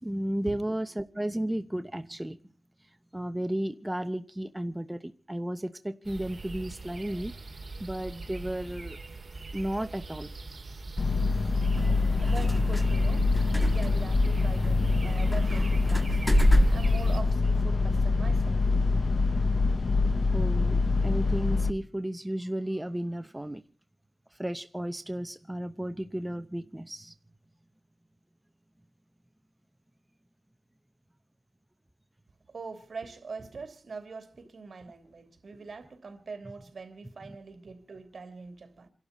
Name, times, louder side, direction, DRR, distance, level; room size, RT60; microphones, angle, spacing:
voice 1, 0.0-2.4 2.8-7.3 7.8-9.0 9.5-10.3 20.3-23.6 24.3-27.1, right 1 dB, 10° right, 0.8 m, -33 dB
sound 1, 6.0-17.2, right 3 dB, 45° right, 2.1 m, -42 dB
sound 2, 11.0-21.7, left 3 dB, 55° left, 0.9 m, -25 dB
sound 3, 11.8-17.3, equal, 5° left, 1.7 m, -28 dB
voice 2, 11.8-16.2 16.7-19.3 32.5-38.9, right 4 dB, 70° right, 2.9 m, -43 dB
28.5 x 12.0 x 4.1 m
wide cardioid pair, 90°, 0 cm